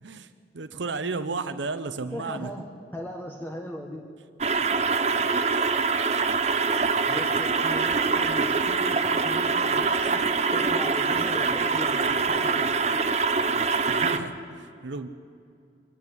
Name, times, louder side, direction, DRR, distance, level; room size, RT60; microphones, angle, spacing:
voice 1, 0.0-2.5 13.5-15.1, right 3 dB, 85° right, 10 dB, 0.8 m, -34 dB
voice 2, 2.1-2.6 2.9-4.0 7.1-10.2 10.5-12.7, equal, 10° left, 0 dB, 1.4 m, -38 dB
sound 1, 4.4-14.2, right 4 dB, 35° right, 0.9 m, -24 dB
24.5 x 11.0 x 9.9 m, 2.4 s
head